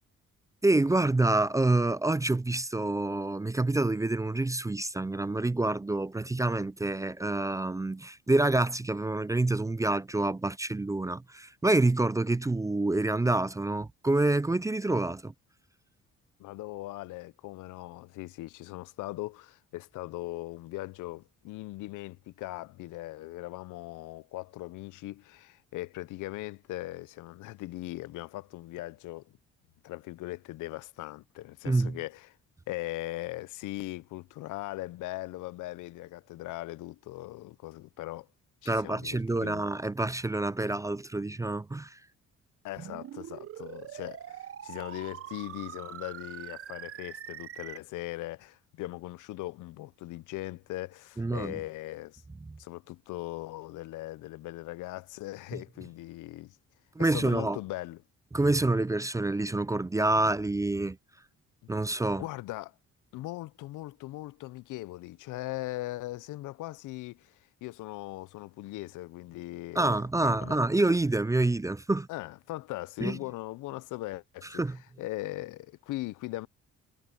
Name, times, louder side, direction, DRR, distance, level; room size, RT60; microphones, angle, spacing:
voice 1, 0.6-15.3 31.7-32.0 38.7-42.0 51.2-51.6 57.0-57.6 58.3-61.0 61.7-62.2 69.7-72.1 73.0-73.2 74.5-74.8, right 2 dB, 10° right, 0.4 m, -27 dB
voice 2, 16.4-29.3 29.8-32.4 32.7-38.3 38.6-39.7 42.6-52.2 52.6-56.6 57.0-58.0 62.2-62.7 63.1-70.6 72.1-74.6 75.0-76.5, left 18 dB, 85° left, 0.6 m, -39 dB
sound 1, 42.8-47.8, right 10 dB, 50° right, 0.8 m, -43 dB
cardioid pair, 90°, 30 cm